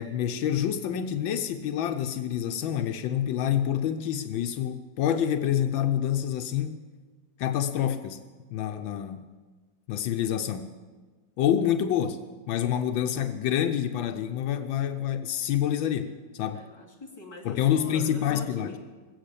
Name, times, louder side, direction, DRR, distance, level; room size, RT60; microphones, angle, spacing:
voice 1, 0.0-6.8 7.4-8.2 8.5-9.3 9.9-10.7 11.4-12.2 12.5-16.6 17.4-18.7, left 10 dB, 80° left, 8 dB, 1.5 m, -27 dB
voice 2, 16.5-18.8, left 2 dB, 15° left, -3 dB, 2.5 m, -44 dB
21.0 x 8.2 x 8.3 m, 1.4 s
omnidirectional pair, 2.1 m